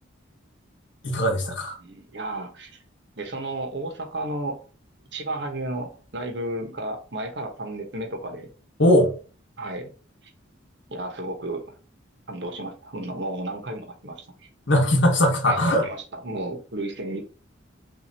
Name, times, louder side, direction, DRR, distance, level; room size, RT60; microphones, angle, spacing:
voice 1, 1.0-1.8 8.8-9.1 14.7-15.8, left 1 dB, 70° left, 1.2 m, -20 dB
voice 2, 1.8-2.8 3.2-4.6 5.1-8.5 9.6-9.9 10.9-11.7 12.3-14.5 15.4-17.2, right 1 dB, 60° right, 1.0 m, -33 dB
5.9 x 2.7 x 2.8 m
head